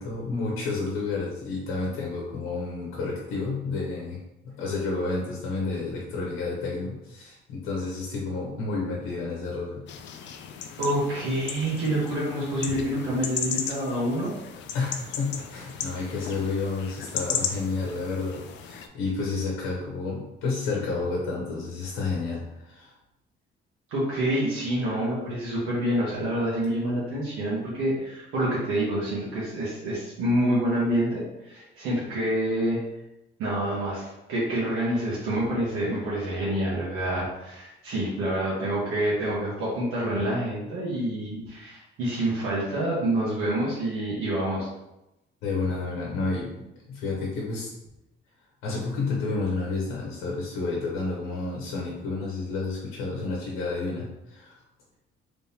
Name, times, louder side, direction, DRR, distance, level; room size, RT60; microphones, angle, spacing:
voice 1, 0.0-4.2 4.4-9.8 14.7-22.9 45.4-47.7 48.6-54.5, left 3 dB, 85° left, -3 dB, 0.9 m, -30 dB
sound 1, 9.9-18.9, left 7 dB, 60° left, 0.4 m, -35 dB
voice 2, 10.8-14.3 23.9-32.8 33.4-44.7, right 1 dB, 90° right, -7 dB, 1.3 m, -27 dB
3.5 x 3.3 x 2.8 m, 0.91 s
cardioid pair, 130°, 21 cm